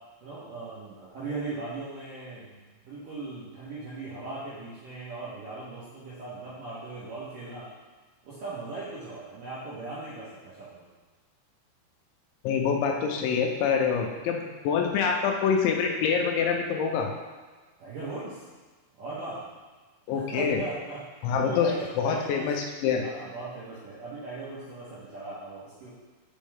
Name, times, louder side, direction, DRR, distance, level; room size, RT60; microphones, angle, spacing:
voice 1, 0.2-7.7 8.2-10.9 13.8-14.0 17.8-18.4 19.0-19.5 20.1-21.0 21.4-22.5 23.0-25.9, right 3 dB, 70° right, -9 dB, 2.1 m, -38 dB
voice 2, 12.4-17.1 20.1-20.6 21.2-21.7 22.0-23.0, left 6 dB, 85° left, 2 dB, 2.9 m, -26 dB
6.3 x 5.4 x 3.5 m, 1.3 s
omnidirectional pair, 5.3 m